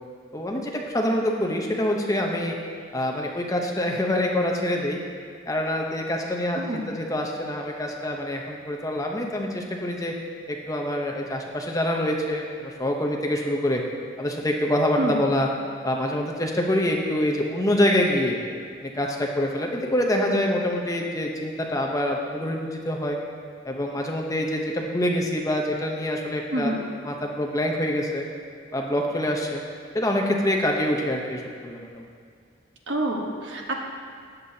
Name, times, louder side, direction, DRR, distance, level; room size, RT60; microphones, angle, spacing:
voice 1, 0.3-2.5 2.9-5.0 5.5-10.1 10.5-13.8 14.2-15.5 15.8-18.4 18.8-23.2 23.6-26.7 27.0-28.2 28.7-29.6 29.9-32.1, left 1 dB, 15° left, 0 dB, 0.8 m, -25 dB
voice 2, 6.5-6.9 15.0-15.2 26.5-26.8 32.9-33.7, right 1 dB, 70° right, 0 dB, 1.2 m, -27 dB
13.5 x 9.2 x 2.8 m, 2.1 s
head